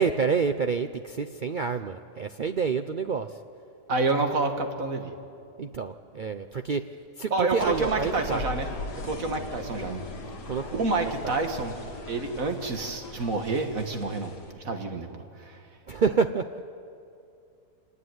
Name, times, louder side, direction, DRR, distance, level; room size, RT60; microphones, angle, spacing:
voice 1, 0.0-3.3 5.6-6.9 7.2-8.4 10.5-10.8 11.2-11.3 15.9-16.5, right 5 dB, 85° right, 8 dB, 0.4 m, -28 dB
voice 2, 3.9-5.1 7.3-8.7 9.0-10.0 10.7-11.8 12.1-15.6, right 3 dB, 55° right, 5 dB, 2.1 m, -28 dB
sound 1, 7.6-14.5, left 2 dB, 75° left, 2.6 m, -39 dB
25.5 x 19.5 x 9.6 m, 2.5 s
omnidirectional pair, 1.8 m